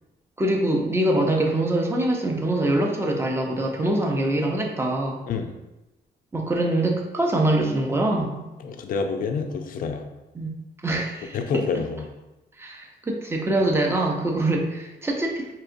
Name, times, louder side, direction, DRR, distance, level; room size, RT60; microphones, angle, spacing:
voice 1, 0.4-5.2 6.3-8.4 10.3-10.5 10.8-11.6 12.6-15.5, right 1 dB, 15° right, 1 dB, 0.5 m, -24 dB
voice 2, 8.6-10.0 11.3-12.1, left 5 dB, 55° left, 6 dB, 0.4 m, -27 dB
4.6 x 2.8 x 2.5 m, 1.0 s
wide cardioid pair, 150°, 17 cm